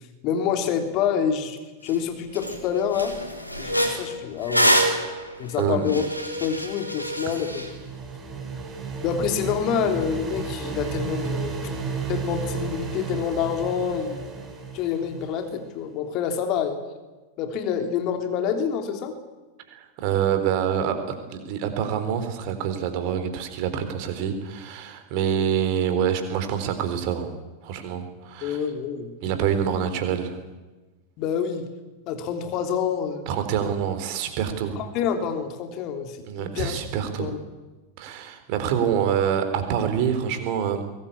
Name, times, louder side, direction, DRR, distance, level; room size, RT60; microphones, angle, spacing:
voice 1, 0.2-3.1 3.6-4.8 5.4-6.0 6.4-7.7 9.0-11.8 12.1-14.2 14.7-16.8 17.4-19.1 25.3-25.4 28.4-29.1 31.2-31.6 32.1-33.3 34.8-36.8 37.2-37.4, left 7 dB, 40° left, 6 dB, 3.3 m, -27 dB
sound 1, 1.9-2.0 2.4-2.6 2.9-7.7, equal, 90° right, 3.7 m, -25 dB
voice 2, 5.6-6.0 19.7-27.3 27.6-28.6 29.2-30.4 33.3-34.8 36.3-37.3 38.0-40.8, right 8 dB, 45° right, 8 dB, 3.7 m, -26 dB
sound 2, 7.1-15.7, right 5 dB, 20° right, 5.0 m, -33 dB
22.5 x 19.0 x 8.5 m, 1.2 s
figure-of-eight pair, 90°, 0 cm